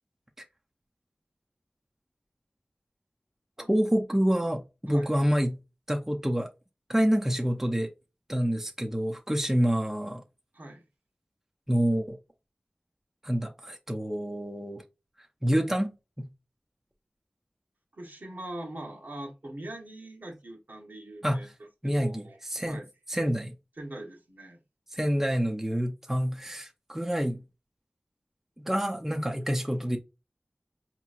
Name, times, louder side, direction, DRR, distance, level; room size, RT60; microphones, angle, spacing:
voice 1, 3.7-5.6 5.9-6.5 6.9-7.9 8.3-10.2 11.7-12.2 13.2-14.8 15.4-15.9 16.2-16.3 21.2-21.4 21.8-22.2 22.5-22.8 23.1-23.5 24.9-27.4 28.6-30.0, equal, 10° right, 0.6 m, -27 dB
voice 2, 10.5-10.8 17.9-21.5 21.8-22.4 22.6-22.9 23.8-24.6, right 1 dB, 65° right, 1.1 m, -42 dB
4.5 x 2.9 x 2.4 m
wide cardioid pair, 50°, 3 cm